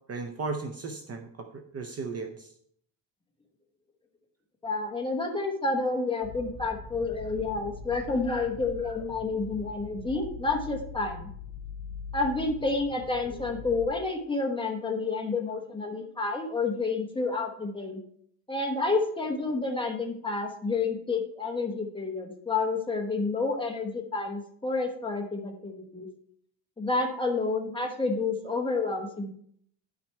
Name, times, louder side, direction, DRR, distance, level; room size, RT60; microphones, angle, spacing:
voice 1, 0.1-2.5, right 4 dB, 30° right, 5 dB, 0.6 m, -36 dB
voice 2, 4.6-11.3 12.1-18.0 18.5-26.1 26.8-29.3, left 3 dB, 10° left, 2 dB, 1.0 m, -29 dB
sound 1, 6.2-13.9, left 5 dB, 70° left, 1.5 m, -42 dB
10.0 x 6.0 x 4.5 m, 0.65 s
cardioid pair, 180°, 47 cm